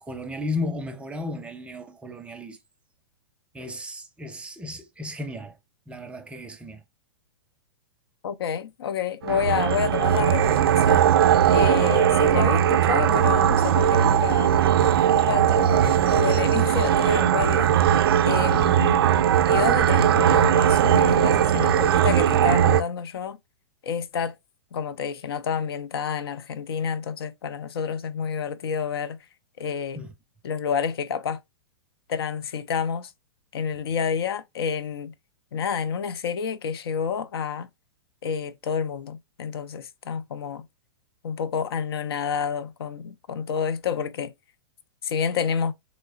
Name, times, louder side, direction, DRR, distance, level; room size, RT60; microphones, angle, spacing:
voice 1, 0.0-2.6 3.5-5.6 5.9-6.8 30.0-30.1, left 2 dB, 10° right, 0.5 m, -34 dB
voice 2, 8.2-11.1 11.5-14.6 15.1-17.7 18.3-19.1 19.5-23.4 23.8-24.4 24.7-29.2 29.6-30.0 30.4-31.4 32.1-33.1 33.5-35.1 35.5-37.7 38.2-40.7 41.2-44.3 45.0-45.7, left 7 dB, 75° left, 0.5 m, -29 dB
sound 1, 9.2-22.8, right 9 dB, 70° right, 0.4 m, -19 dB
3.2 x 3.0 x 2.4 m
hypercardioid pair, 120°, 13 cm